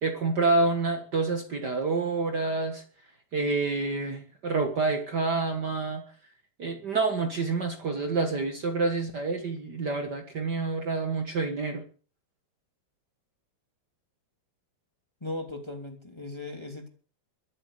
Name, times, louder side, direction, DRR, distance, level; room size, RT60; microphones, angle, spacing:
voice 1, 0.0-2.8 3.3-6.0 6.6-11.8, right 3 dB, 85° right, 5 dB, 0.9 m, -28 dB
voice 2, 15.2-16.9, left 2 dB, 10° left, 3 dB, 2.0 m, -37 dB
23.5 x 8.0 x 6.7 m, 0.41 s
omnidirectional pair, 4.5 m